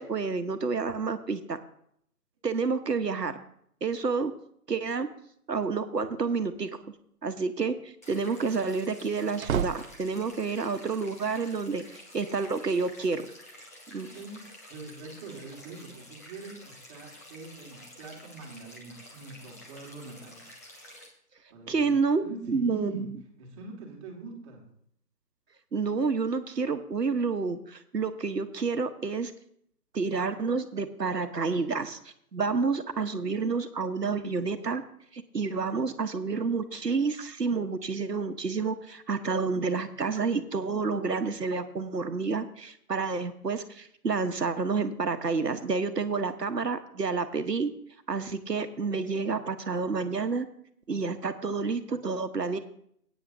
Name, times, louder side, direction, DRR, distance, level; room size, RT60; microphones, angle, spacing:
voice 1, 0.0-1.6 2.4-3.3 3.8-4.3 4.7-5.1 5.5-6.7 7.2-11.8 12.1-13.2 13.9-14.1 21.7-23.1 25.7-29.3 29.9-32.0 32.3-34.8 35.1-47.7 48.1-50.5 50.9-52.6, right 4 dB, 80° right, 9 dB, 1.3 m, -29 dB
sound 1, 6.2-6.8 9.0-10.5, right 8 dB, 60° right, 0.5 m, -33 dB
sound 2, 8.0-21.1, left 1 dB, 10° left, 0.7 m, -50 dB
voice 2, 13.9-20.5 21.5-21.9 22.2-24.7, right 3 dB, 20° right, 0 dB, 1.9 m, -43 dB
17.0 x 9.2 x 2.7 m, 0.69 s
figure-of-eight pair, 145°, 48 cm